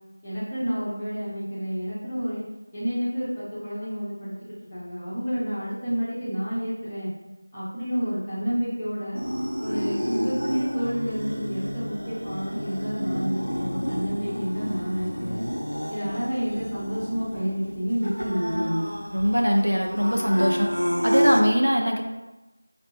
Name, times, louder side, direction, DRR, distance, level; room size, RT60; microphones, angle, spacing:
voice 1, 0.2-2.4 2.7-7.1 7.5-9.2 9.6-15.4 15.9-18.9, equal, ahead, -14 dB, 0.5 m, -29 dB
sound 1, 9.1-21.4, equal, 90° left, 0.4 m, -29 dB
voice 2, 19.1-20.7 21.0-22.0, equal, 80° right, 1 dB, 0.5 m, -21 dB
5.1 x 2.1 x 2.7 m, 1.0 s
figure-of-eight pair, 170°, 0 cm